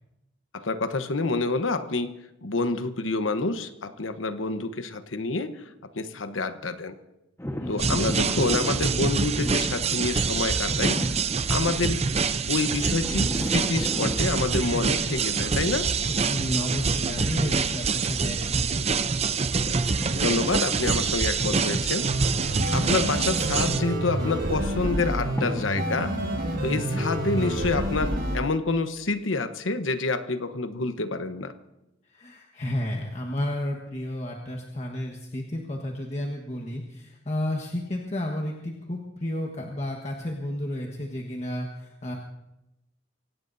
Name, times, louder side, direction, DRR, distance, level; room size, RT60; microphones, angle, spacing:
voice 1, 0.5-2.1 2.4-7.0 7.7-11.1 11.5-12.1 12.5-15.9 19.6-19.8 20.1-22.1 22.7-26.1 26.6-31.5, left 3 dB, 85° left, 9 dB, 1.1 m, -28 dB
sound 1, 7.4-27.1, equal, 15° left, 1.3 m, -39 dB
voice 2, 7.6-8.0 16.3-18.7 26.6-27.0 32.1-42.1, left 1 dB, 35° left, 0 dB, 1.4 m, -32 dB
sound 2, 7.8-23.8, right 5 dB, 35° right, 0.6 m, -26 dB
sound 3, 22.0-28.4, right 1 dB, 55° right, 6.5 m, -28 dB
25.0 x 17.5 x 2.7 m, 0.93 s
head